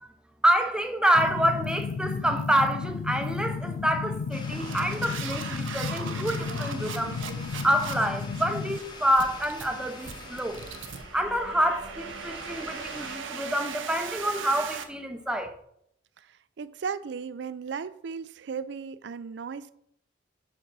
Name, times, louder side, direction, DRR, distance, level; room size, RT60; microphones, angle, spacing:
voice 1, 0.4-7.2 7.6-10.6 11.1-15.5, equal, 5° right, 0.5 m, -27 dB
sound 1, 1.1-8.8, left 5 dB, 75° left, 0.3 m, -33 dB
sound 2, 1.1-1.3 1.6-1.9 2.4-2.7 3.2-3.5 4.1-14.8, right 6 dB, 90° right, 0.8 m, -39 dB
sound 3, 4.3-13.2, left 2 dB, 25° left, 0.9 m, -45 dB
voice 2, 16.2-19.7, right 6 dB, 65° right, 0.4 m, -36 dB
5.1 x 5.1 x 6.1 m
head